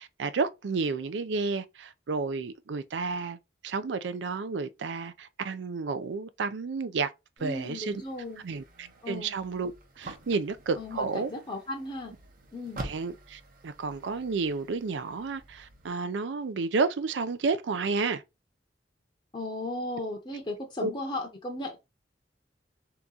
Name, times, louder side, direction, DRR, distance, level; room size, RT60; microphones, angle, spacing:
voice 1, 0.0-3.4 3.6-7.1 7.4-8.0 8.4-9.7 10.0-11.3 12.8-18.2 20.8-20.9, right 4 dB, 80° right, 0.4 m, -31 dB
voice 2, 7.4-8.4 9.0-9.3 10.8-12.1 12.5-12.8 19.3-21.8, left 1 dB, 25° left, 0.7 m, -36 dB
sound 1, 7.4-15.9, right 2 dB, 50° right, 0.7 m, -47 dB
3.5 x 2.9 x 3.8 m
head